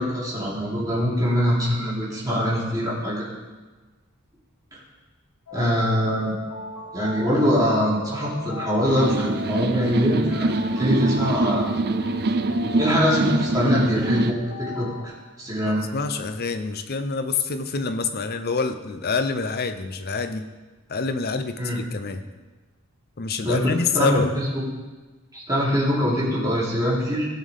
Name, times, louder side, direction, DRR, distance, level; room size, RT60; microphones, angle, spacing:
voice 1, 0.0-3.3 5.5-6.4 6.9-10.5 10.7-11.7 12.8-15.1 15.4-15.8 21.6-21.8 23.4-24.6 25.3-27.3, equal, 15° right, -8 dB, 3.2 m, -23 dB
sound 1, 5.5-15.1, left 2 dB, 90° left, 1.6 m, -39 dB
sound 2, 8.8-14.3, right 2 dB, 45° right, 0.5 m, -24 dB
voice 2, 15.6-20.5 20.9-22.2 23.2-24.3, left 4 dB, 45° left, 9 dB, 0.6 m, -26 dB
17.0 x 6.5 x 3.5 m, 1.3 s
head